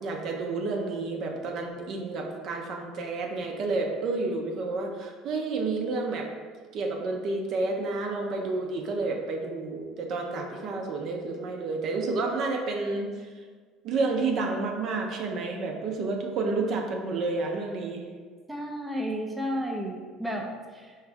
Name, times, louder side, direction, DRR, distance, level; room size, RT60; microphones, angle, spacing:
voice 1, 0.0-6.3 6.7-13.3 13.8-18.0, right 3 dB, 55° right, 2 dB, 0.7 m, -30 dB
voice 2, 18.5-21.0, equal, 10° right, 0 dB, 0.5 m, -32 dB
4.7 x 3.2 x 3.5 m, 1.5 s
cardioid pair, 120°, 0 cm